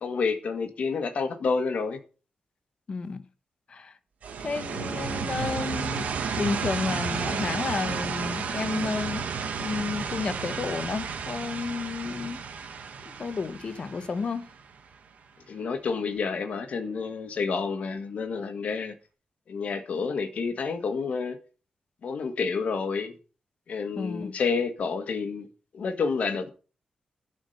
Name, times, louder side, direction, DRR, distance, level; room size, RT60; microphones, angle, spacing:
voice 1, 0.0-2.0 15.5-18.9 19.5-21.4 22.0-23.2 23.7-25.5 25.7-26.5, left 5 dB, 60° left, 1.7 m, -29 dB
voice 2, 2.9-3.2 3.7-4.0 4.4-6.1 6.4-12.4 13.0-14.5 24.0-24.4, left 4 dB, 45° left, 1.1 m, -32 dB
sound 1, 4.2-14.9, right 6 dB, 70° right, 1.5 m, -32 dB
12.0 x 5.1 x 6.7 m
wide cardioid pair, 160°, 3 cm